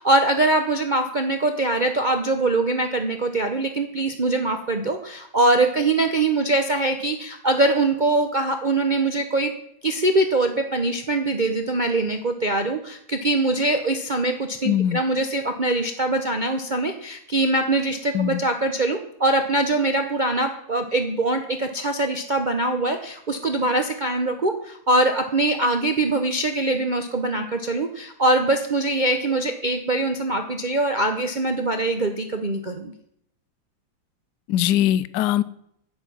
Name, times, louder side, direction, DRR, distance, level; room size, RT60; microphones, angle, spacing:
voice 1, 0.0-9.5 9.8-32.9, right 2 dB, 60° right, 5 dB, 0.4 m, -23 dB
voice 2, 14.6-15.0 18.1-18.4 34.5-35.4, left 11 dB, 70° left, 17 dB, 1.1 m, -21 dB
10.0 x 9.1 x 6.1 m, 0.71 s
omnidirectional pair, 2.1 m